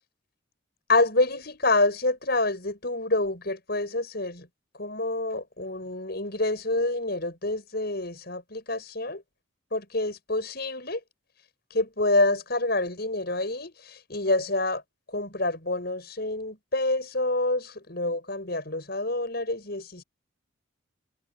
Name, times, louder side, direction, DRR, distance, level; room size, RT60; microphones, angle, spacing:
voice 1, 0.9-4.5 4.7-9.2 9.7-11.0 11.7-14.8 15.1-20.0, left 2 dB, 50° left, 7.8 m, -27 dB
head